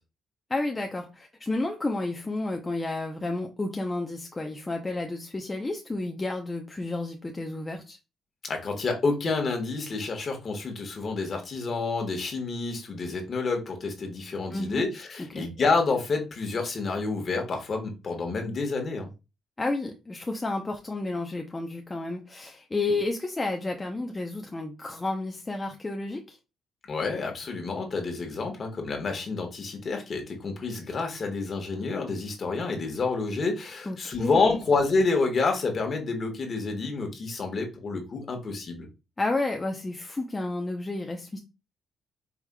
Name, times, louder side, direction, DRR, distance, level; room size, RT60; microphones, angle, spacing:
voice 1, 0.5-8.0 14.5-14.8 15.3-15.5 19.6-26.4 33.9-34.6 39.2-41.4, left 2 dB, 20° left, 0.6 m, -31 dB
voice 2, 8.4-19.1 26.9-38.9, left 3 dB, 45° left, 1.3 m, -28 dB
4.8 x 3.4 x 2.2 m
cardioid pair, 90°, 0 cm